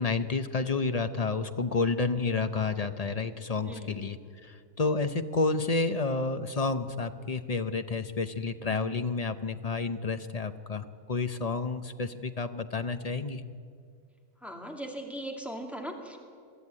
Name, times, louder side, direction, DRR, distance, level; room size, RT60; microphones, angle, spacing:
voice 1, 0.0-13.4, left 4 dB, 35° left, 9 dB, 0.7 m, -30 dB
voice 2, 3.7-4.0 14.4-16.2, right 1 dB, ahead, 1 dB, 2.4 m, -39 dB
22.5 x 13.5 x 9.7 m, 2.2 s
omnidirectional pair, 1.4 m